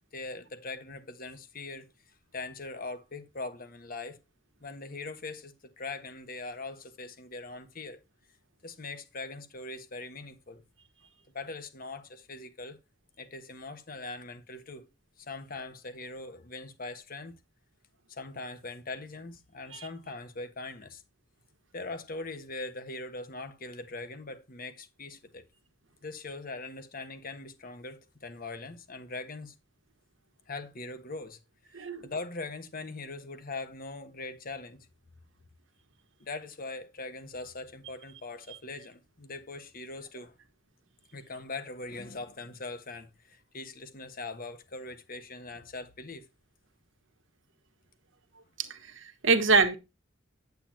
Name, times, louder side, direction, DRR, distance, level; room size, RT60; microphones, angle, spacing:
voice 1, 0.1-1.9 2.3-4.2 4.6-8.0 8.6-10.6 11.3-12.8 13.2-14.9 15.2-17.4 18.1-21.0 21.7-25.4 26.0-29.5 30.5-31.4 31.7-34.9 36.2-40.4 41.1-46.3, left 3 dB, 45° left, 1.2 m, -41 dB
voice 2, 31.7-32.1 48.6-49.8, right 4 dB, 70° right, 1.3 m, -25 dB
8.7 x 8.3 x 2.8 m
head